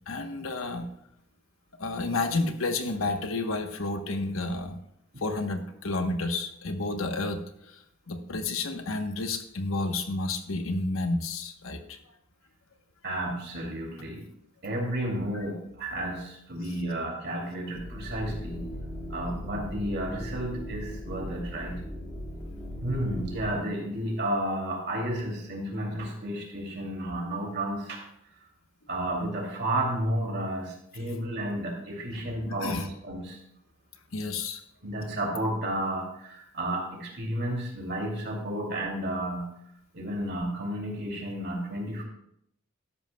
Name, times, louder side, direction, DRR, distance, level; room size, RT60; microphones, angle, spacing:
voice 1, 0.1-0.9 1.8-4.8 5.2-12.0 15.3-15.4 32.4-32.9 34.1-34.6, left 2 dB, 70° left, 6 dB, 1.0 m, -31 dB
voice 2, 13.0-14.2 14.6-18.7 19.1-21.8 22.8-28.0 28.9-33.4 34.8-39.5 39.9-42.0, right 1 dB, 55° right, 0 dB, 2.6 m, -32 dB
sound 1, 17.7-23.5, equal, 20° left, 1.8 m, -38 dB
12.5 x 11.0 x 2.2 m, 0.75 s
head